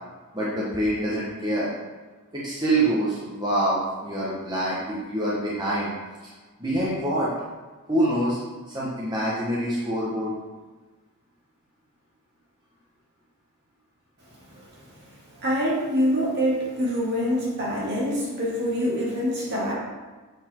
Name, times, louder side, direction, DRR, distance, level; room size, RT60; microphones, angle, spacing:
voice 1, 0.3-1.7 2.3-5.9 6.6-7.3 7.9-8.4 8.7-10.3, right 1 dB, 20° right, -7 dB, 1.1 m, -25 dB
voice 2, 15.4-19.7, equal, 50° right, -5 dB, 2.2 m, -25 dB
8.0 x 4.2 x 4.4 m, 1.3 s
head